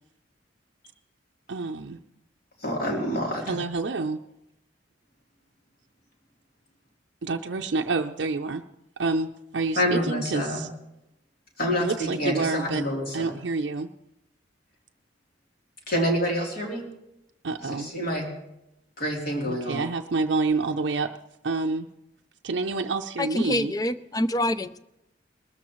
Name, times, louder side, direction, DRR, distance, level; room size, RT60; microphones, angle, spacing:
voice 1, 1.5-2.0 3.5-4.2 7.2-8.6 9.0-10.7 11.8-12.8 13.1-13.9 17.4-17.9 19.5-21.1 21.4-21.9 22.4-23.7, right 3 dB, 70° right, 3 dB, 0.5 m, -28 dB
voice 2, 2.6-3.6 9.8-10.7 11.6-13.3 15.9-16.8 17.6-18.3 19.0-19.8, equal, 55° left, -1 dB, 3.3 m, -27 dB
voice 3, 23.2-24.8, left 1 dB, 20° left, 13 dB, 0.4 m, -26 dB
21.0 x 13.5 x 3.0 m, 0.87 s
head